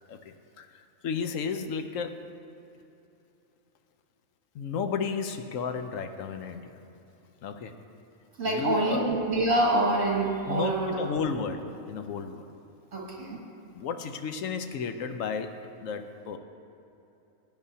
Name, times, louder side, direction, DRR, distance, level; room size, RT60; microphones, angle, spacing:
voice 1, 0.1-2.2 4.5-6.8 7.4-7.8 8.4-9.1 10.4-12.5 13.7-16.4, left 5 dB, 65° left, 7 dB, 1.0 m, -33 dB
voice 2, 8.4-11.3 12.9-13.4, right 2 dB, 60° right, -3 dB, 2.3 m, -26 dB
17.0 x 9.1 x 2.8 m, 2.9 s
omnidirectional pair, 1.6 m